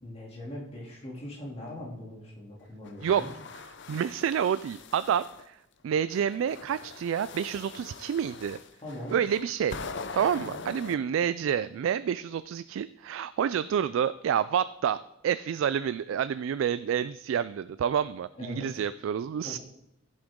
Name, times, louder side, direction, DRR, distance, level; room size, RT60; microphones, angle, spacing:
voice 1, 0.0-3.3 8.8-9.2 10.4-10.8 18.3-18.7 19.4-19.6, left 1 dB, 30° left, -3 dB, 2.8 m, -41 dB
sound 1, 2.8-5.5 6.1-10.9, left 4 dB, 65° left, 0.7 m, -43 dB
voice 2, 3.9-5.6 5.8-8.6 9.1-9.8 10.1-19.6, right 8 dB, 85° right, 14 dB, 0.3 m, -28 dB
15.0 x 7.8 x 3.7 m, 0.84 s
head